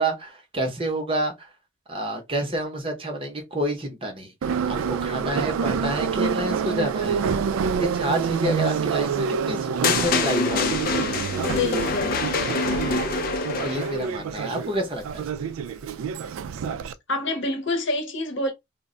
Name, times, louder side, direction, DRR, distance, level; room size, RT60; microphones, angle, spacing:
voice 1, 0.0-1.5 1.9-7.3 7.8-10.7 12.9-15.3, right 1 dB, 25° right, 0.6 m, -29 dB
Subway metro underground, 4.4-16.9, right 6 dB, 85° right, 0.3 m, -27 dB
sound 1, 9.8-14.1, left 4 dB, 45° left, 0.4 m, -25 dB
voice 2, 11.5-12.2 17.1-18.5, left 2 dB, 60° left, 0.8 m, -27 dB
2.1 x 2.0 x 3.6 m
head